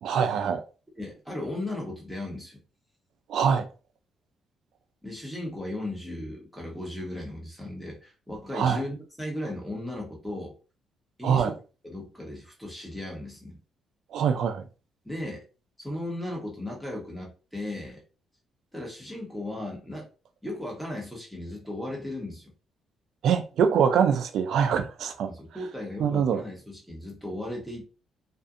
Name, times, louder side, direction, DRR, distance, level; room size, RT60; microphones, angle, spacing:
voice 1, 0.0-0.6 3.3-3.7 8.5-8.8 11.2-11.5 14.1-14.6 23.2-25.3 26.0-26.4, right 7 dB, 75° right, 0.4 m, -24 dB
voice 2, 0.9-2.6 5.0-10.5 11.2-11.6 11.8-13.6 15.0-15.4 15.8-18.0 18.7-20.1 20.4-22.5 25.3-27.8, left 1 dB, ahead, 1.2 m, -36 dB
2.6 x 2.4 x 2.5 m
cardioid pair, 90°, 0 cm